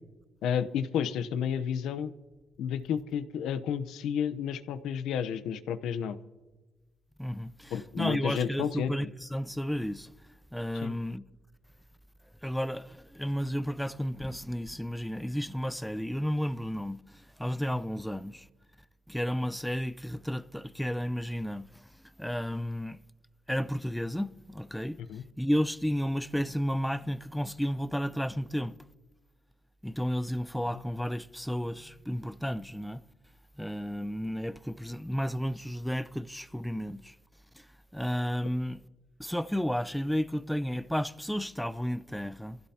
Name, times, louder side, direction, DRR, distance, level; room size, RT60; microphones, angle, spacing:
voice 1, 0.4-2.1 2.6-6.2 7.7-9.1 10.8-10.9 25.0-25.2, left 8 dB, 85° left, 0.8 m, -31 dB
voice 2, 7.2-10.1 10.5-11.2 12.4-18.5 19.1-21.9 22.2-23.0 23.5-28.7 29.8-33.0 33.6-37.2 37.5-38.8 39.2-42.6, equal, ahead, 0.6 m, -32 dB
25.0 x 16.0 x 2.9 m
cardioid pair, 90°, 0 cm